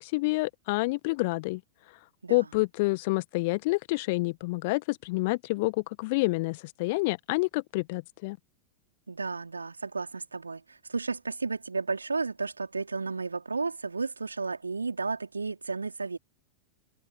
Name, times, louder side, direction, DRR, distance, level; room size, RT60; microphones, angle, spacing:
voice 1, 0.0-1.6 2.3-8.4, left 24 dB, 50° left, 1.6 m, -28 dB
voice 2, 9.1-16.2, right 4 dB, 80° right, 4.2 m, -33 dB
figure-of-eight pair, 90°, 0 cm